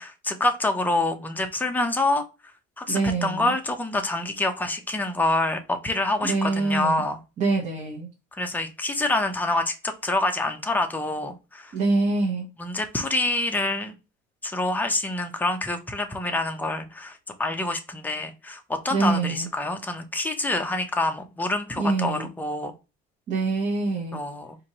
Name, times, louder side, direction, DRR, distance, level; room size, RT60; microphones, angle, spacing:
voice 1, 0.0-2.2 2.8-7.2 8.3-11.7 12.6-13.9 14.4-22.7 24.1-24.6, left 2 dB, 10° left, 6 dB, 0.6 m, -26 dB
voice 2, 2.9-3.5 6.2-7.0 7.4-8.1 11.7-12.5 18.9-19.5 21.8-22.3 23.3-24.2, right 3 dB, 40° right, -2 dB, 1.0 m, -25 dB
4.4 x 2.6 x 2.8 m, 0.29 s
cardioid pair, 130°, 20 cm